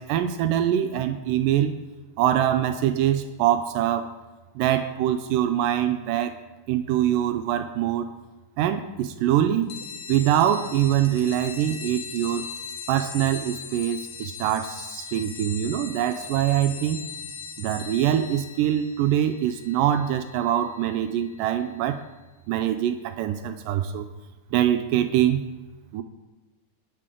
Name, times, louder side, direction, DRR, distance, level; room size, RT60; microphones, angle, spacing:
voice 1, 0.0-1.8 2.2-4.1 4.6-6.3 6.7-8.1 8.6-9.7 10.1-12.5 12.9-17.0 17.6-22.0 22.5-24.1 24.5-25.4 25.9-26.0, right 11 dB, 85° right, 8 dB, 2.3 m, -24 dB
sound 1, 9.7-21.8, left 6 dB, 75° left, 2.6 m, -40 dB
20.0 x 7.6 x 3.7 m, 1.2 s
omnidirectional pair, 3.8 m